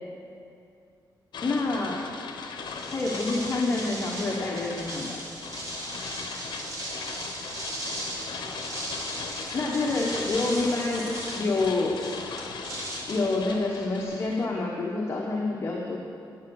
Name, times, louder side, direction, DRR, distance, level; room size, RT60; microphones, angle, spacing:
sound 1, 1.3-14.5, left 5 dB, 70° left, 0.8 m, -38 dB
voice 1, 1.4-2.0 2.9-5.2 9.5-12.0 13.1-16.0, left 3 dB, 35° left, -2 dB, 1.0 m, -27 dB
sound 2, 2.6-14.0, right 1 dB, 40° right, 2.4 m, -38 dB
10.5 x 7.8 x 6.2 m, 2.5 s
wide cardioid pair, 130°, 8 cm